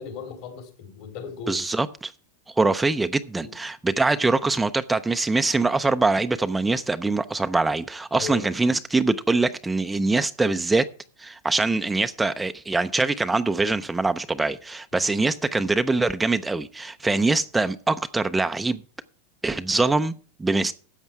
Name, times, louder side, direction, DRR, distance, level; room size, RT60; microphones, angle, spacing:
voice 1, 0.0-1.6 3.4-3.5 8.1-8.5 14.9-15.1, left 5 dB, 55° left, 3.7 m, -37 dB
voice 2, 1.5-2.1 2.5-10.9 11.2-18.8 19.4-20.7, right 3 dB, 5° right, 0.4 m, -23 dB
13.0 x 8.1 x 4.7 m
supercardioid pair, 150°, 0 cm